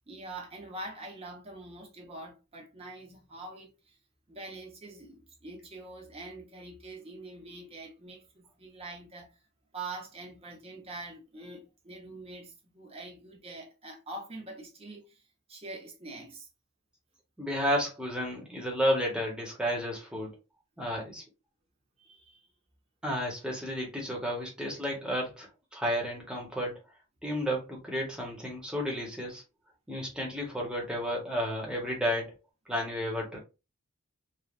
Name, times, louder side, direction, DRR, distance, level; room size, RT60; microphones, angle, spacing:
voice 1, 0.1-4.0 4.3-9.3 9.7-15.2 15.5-16.5 22.0-22.5, right 2 dB, 30° right, 0.8 m, -44 dB
voice 2, 17.4-20.3 20.8-21.2 23.0-25.5 25.7-26.7 27.2-29.4 29.9-32.3 32.7-33.4, equal, 5° right, 1.0 m, -32 dB
3.2 x 2.3 x 2.5 m
head